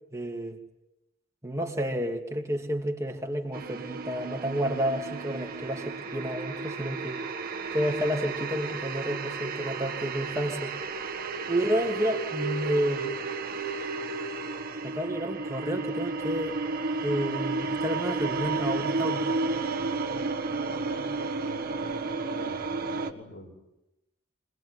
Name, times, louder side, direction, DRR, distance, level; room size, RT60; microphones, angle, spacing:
voice 1, 0.1-0.6 1.4-7.2 7.7-10.7 11.4-13.2 14.8-16.6 17.0-19.4, equal, 15° right, 1 dB, 2.9 m, -30 dB
sound 1, 3.5-23.1, right 3 dB, 50° right, 1.7 m, -32 dB
voice 2, 20.6-23.5, left 1 dB, 60° left, 3 dB, 5.6 m, -46 dB
26.5 x 20.0 x 9.8 m, 0.95 s
head